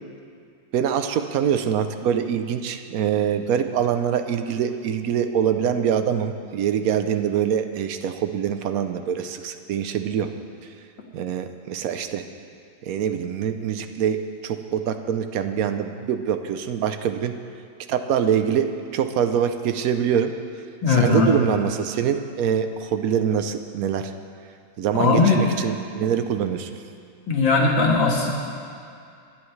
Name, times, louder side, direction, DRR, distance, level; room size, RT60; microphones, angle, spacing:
voice 1, 0.7-10.3 11.1-12.2 12.8-17.4 17.9-20.3 20.9-24.1 24.8-26.7, right 8 dB, 65° right, 8 dB, 0.9 m, -24 dB
voice 2, 20.8-21.4 25.0-25.4 27.3-28.3, left 3 dB, 80° left, -2 dB, 2.4 m, -18 dB
24.5 x 9.5 x 3.2 m, 2.4 s
omnidirectional pair, 2.0 m